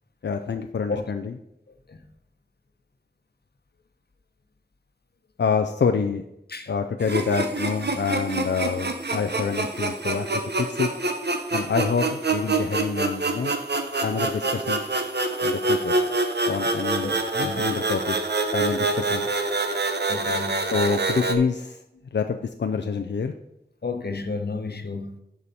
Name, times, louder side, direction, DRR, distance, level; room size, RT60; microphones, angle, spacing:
voice 1, 0.2-1.3 5.4-6.3 6.7-10.9 11.5-13.5 14.0-14.8 15.4-16.0 16.5-18.2 18.5-19.3 20.7-21.8 22.1-23.3, left 5 dB, 90° left, 5 dB, 0.5 m, -27 dB
Breathy Riser, 7.0-21.3, right 2 dB, 70° right, 1.0 m, -26 dB
voice 2, 17.0-17.7 20.1-20.6 23.8-25.2, left 3 dB, 65° left, 7 dB, 1.0 m, -32 dB
12.0 x 4.8 x 4.2 m, 0.83 s
wide cardioid pair, 45°, 18 cm